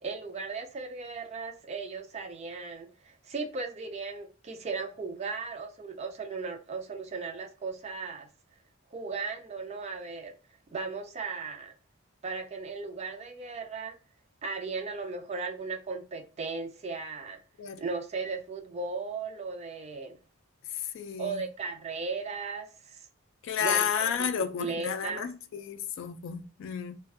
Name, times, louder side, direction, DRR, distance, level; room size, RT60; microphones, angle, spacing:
voice 1, 0.0-8.3 8.9-10.3 10.7-11.7 12.2-14.0 14.4-17.4 17.8-20.2 21.2-23.0 23.6-24.3 24.6-25.3, right 4 dB, 30° right, 0.3 m, -36 dB
voice 2, 20.9-21.4 23.4-27.0, left 7 dB, 65° left, 0.3 m, -31 dB
2.3 x 2.2 x 2.5 m
head